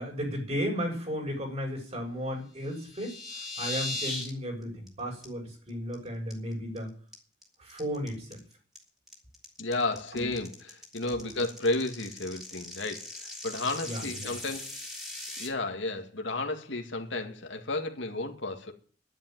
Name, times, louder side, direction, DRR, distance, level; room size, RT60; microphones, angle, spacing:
voice 1, 0.0-6.9 7.6-8.4 10.1-10.3 11.1-11.3 13.8-14.3, equal, 35° right, 7.1 m, -34 dB
sound 1, 2.6-4.3 4.6-4.9 5.2-5.3 5.7-5.9 6.3-6.8 7.1-15.5, left 2 dB, ahead, 3.5 m, -39 dB
voice 2, 9.6-14.8 15.4-18.7, left 2 dB, 75° left, 2.1 m, -32 dB
11.0 x 10.5 x 9.2 m
head